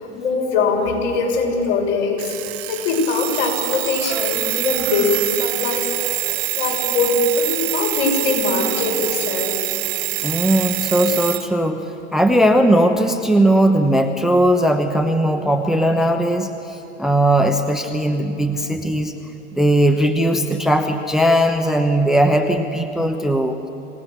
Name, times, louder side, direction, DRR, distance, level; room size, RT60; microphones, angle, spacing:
voice 1, 0.0-5.9 6.2-6.3 6.6-9.6, left 4 dB, 60° left, 0 dB, 6.0 m, -22 dB
Alarm, 2.2-11.5, right 19 dB, 55° right, 1.0 m, -25 dB
voice 2, 10.2-11.8 12.1-19.1 19.5-23.7, right 1 dB, ahead, 7 dB, 1.0 m, -18 dB
27.0 x 17.0 x 6.5 m, 2.9 s
hypercardioid pair, 90°, 38 cm